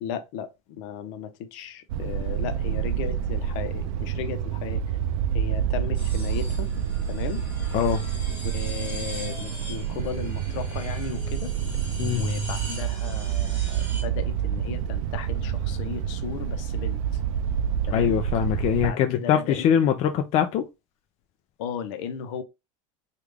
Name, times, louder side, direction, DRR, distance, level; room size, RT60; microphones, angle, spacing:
voice 1, 0.0-4.8 5.3-6.7 7.1-7.4 8.5-11.9 12.1-17.0 17.8-18.2 18.8-19.7 21.6-22.4, left 8 dB, 65° left, 0.7 m, -36 dB
sound 1, 1.9-18.9, right 9 dB, 80° right, 0.4 m, -28 dB
sound 2, 5.9-14.0, right 1 dB, 10° right, 1.5 m, -39 dB
voice 2, 17.9-20.6, left 9 dB, 40° left, 0.4 m, -22 dB
3.3 x 2.4 x 3.3 m
supercardioid pair, 130°, 17 cm